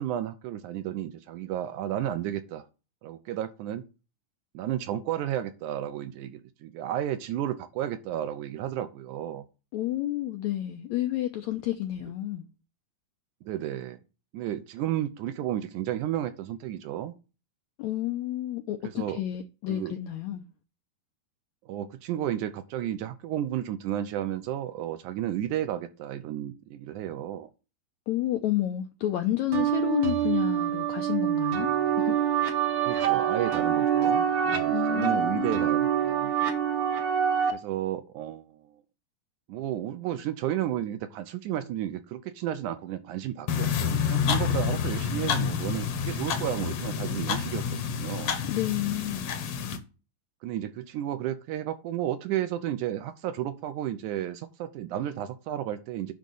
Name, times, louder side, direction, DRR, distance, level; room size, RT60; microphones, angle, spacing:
voice 1, 0.0-2.6 3.0-3.8 4.5-9.4 13.4-14.0 14.3-17.1 18.8-19.2 19.7-19.9 21.7-27.5 32.9-36.3 37.5-38.8 39.5-48.3 50.4-56.1, right 11 dB, 80° right, 1.9 m, -32 dB
voice 2, 9.7-12.4 17.8-20.4 28.1-31.7 32.0-32.2 34.7-35.7 48.5-49.3, left 13 dB, 85° left, 1.6 m, -30 dB
sound 1, 29.5-37.5, right 9 dB, 65° right, 1.4 m, -25 dB
sound 2, 43.5-49.8, left 7 dB, 65° left, 1.5 m, -28 dB
10.0 x 3.7 x 6.8 m
omnidirectional pair, 4.1 m